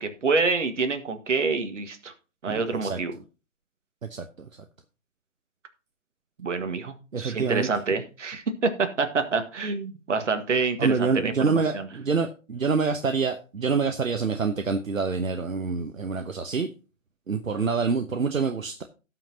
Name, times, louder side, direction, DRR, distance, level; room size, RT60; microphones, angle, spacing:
voice 1, 0.0-2.1 2.4-3.1 6.4-11.9, right 4 dB, 65° right, 7 dB, 1.8 m, -27 dB
voice 2, 2.4-3.0 4.1-4.5 7.1-7.7 10.8-16.7 17.3-18.8, right 5 dB, 80° right, 6 dB, 1.0 m, -26 dB
17.5 x 5.9 x 2.8 m, 0.33 s
figure-of-eight pair, 140°, 40 cm